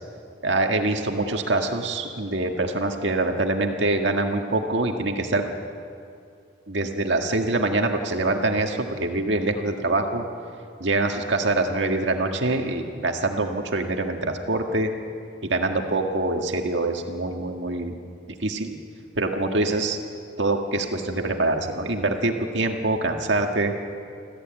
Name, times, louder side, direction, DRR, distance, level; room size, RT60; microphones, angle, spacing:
voice 1, 0.4-5.5 6.7-10.2 10.8-14.9 15.5-17.9 18.4-18.8 19.2-20.0 20.4-23.7, right 2 dB, 75° right, 3 dB, 1.8 m, -24 dB
27.0 x 14.5 x 8.9 m, 2.5 s
head